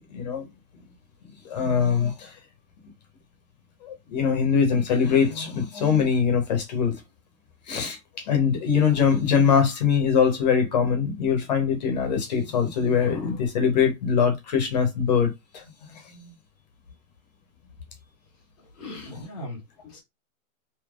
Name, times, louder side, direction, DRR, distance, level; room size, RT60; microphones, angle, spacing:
voice 1, 0.1-0.4 1.4-2.3 3.8-7.0 7.7-15.6 15.9-16.0, left 6 dB, 30° left, 0.9 m, -22 dB
voice 2, 18.7-20.0, left 1 dB, ahead, 0.7 m, -39 dB
3.5 x 2.8 x 2.4 m
hypercardioid pair, 165°, 42 cm